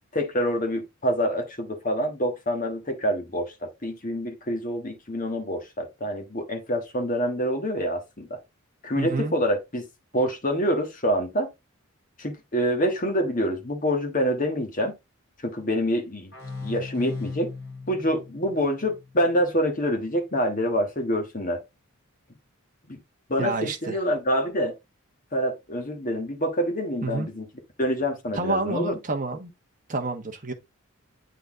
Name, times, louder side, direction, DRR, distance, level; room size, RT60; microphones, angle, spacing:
voice 1, 0.1-8.4 8.8-9.9 10.1-11.5 12.2-14.9 15.4-16.3 16.6-17.5 17.9-21.6 22.9-23.0 23.3-24.7 25.3-27.5 27.8-29.0, equal, 35° left, 1.4 m, -26 dB
voice 2, 9.0-9.3 23.4-24.0 27.0-27.3 28.3-29.5 29.9-30.5, right 3 dB, 35° right, 1.2 m, -28 dB
sound 1, 16.3-19.8, left 4 dB, 55° left, 3.5 m, -38 dB
8.2 x 4.0 x 3.7 m
head